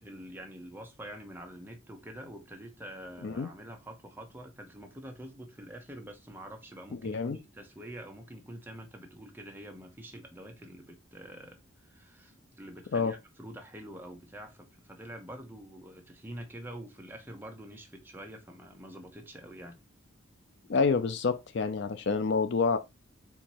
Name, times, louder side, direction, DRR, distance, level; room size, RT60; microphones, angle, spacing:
voice 1, 0.0-19.8, right 1 dB, 10° right, 0.8 m, -46 dB
voice 2, 7.0-7.4 12.9-13.1 20.7-22.8, left 4 dB, 55° left, 0.4 m, -28 dB
4.5 x 2.8 x 4.2 m
head